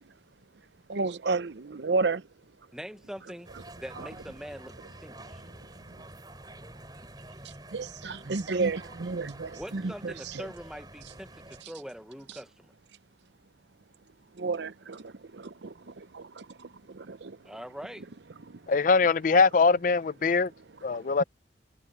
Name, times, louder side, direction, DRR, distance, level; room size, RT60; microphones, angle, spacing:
voice 1, 0.9-2.3 4.0-4.1 5.2-6.1 7.4-10.5 11.6-11.7 12.3-12.4 14.3-17.6 18.4-18.8 20.2-21.2, right 3 dB, 75° right, 0.7 m, -33 dB
voice 2, 2.7-3.5 3.8-5.4 9.5-12.7 17.4-18.1, equal, 5° right, 0.8 m, -43 dB
sound 1, 3.4-11.6, right 1 dB, 20° right, 5.2 m, -48 dB
voice 3, 18.7-20.5 20.8-21.2, left 4 dB, 45° left, 0.4 m, -22 dB
head